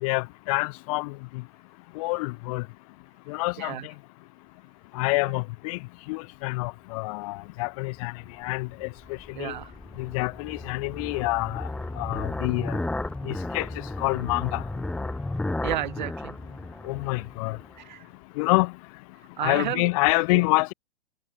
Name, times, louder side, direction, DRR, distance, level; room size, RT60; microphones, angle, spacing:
voice 1, 0.0-1.4 2.0-2.6 3.3-3.7 4.9-5.8 6.1-8.1 8.4-8.9 9.4-9.5 10.0-11.7 12.0-12.8 13.2-13.7 14.0-14.6 16.8-17.6 18.4-18.7 19.4-20.7, left 26 dB, 35° left, 2.0 m, -27 dB
sound 1, 8.3-17.8, left 2 dB, 5° left, 1.4 m, -34 dB
voice 2, 9.3-9.7 15.6-16.3 17.8-18.1 19.4-20.4, right 12 dB, 50° right, 1.5 m, -33 dB
figure-of-eight pair, 115°, 30 cm